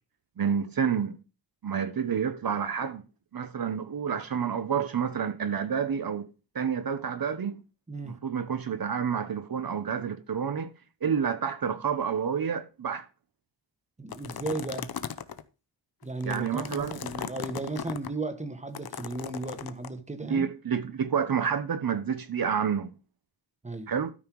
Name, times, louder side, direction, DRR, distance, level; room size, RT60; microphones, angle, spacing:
voice 1, 0.4-1.2 1.6-3.0 3.3-6.3 6.5-7.6 8.0-10.7 11.0-13.0 16.2-17.3 20.2-22.9 23.9-24.1, right 7 dB, 50° right, 0.9 m, -29 dB
voice 2, 14.0-14.9 16.0-20.5 23.6-23.9, right 2 dB, 15° right, 1.3 m, -35 dB
sound 1, 14.1-15.4 16.0-18.1 18.7-19.9, left 8 dB, 55° left, 0.8 m, -37 dB
13.0 x 5.5 x 4.6 m
wide cardioid pair, 165°, 45 cm